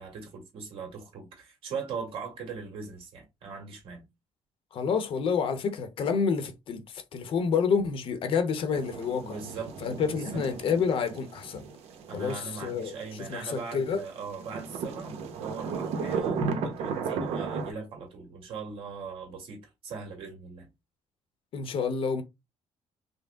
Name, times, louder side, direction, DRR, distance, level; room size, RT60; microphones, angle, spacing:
voice 1, 0.0-4.0 9.2-9.7 10.1-10.4 12.1-20.7, right 5 dB, 60° right, 1.8 m, -40 dB
voice 2, 4.7-9.4 9.8-11.6 12.1-12.9 13.2-14.0 21.5-22.2, left 6 dB, 60° left, 0.8 m, -28 dB
sound 1, 8.7-14.0 14.3-17.7, right 5 dB, 80° right, 0.9 m, -35 dB
5.2 x 2.1 x 3.5 m
cardioid pair, 120°, 10 cm